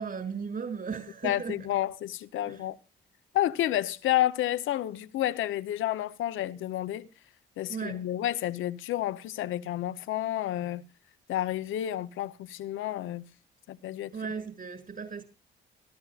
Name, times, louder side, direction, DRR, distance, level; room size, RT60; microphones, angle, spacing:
voice 1, 0.0-1.7 2.5-2.7 7.7-8.1 14.1-15.2, right 5 dB, 50° right, 7.3 m, -36 dB
voice 2, 1.2-2.8 3.3-7.1 7.6-10.8 11.3-13.3 13.7-14.1, left 13 dB, 80° left, 0.9 m, -30 dB
27.0 x 12.5 x 2.4 m
cardioid pair, 90°, 20 cm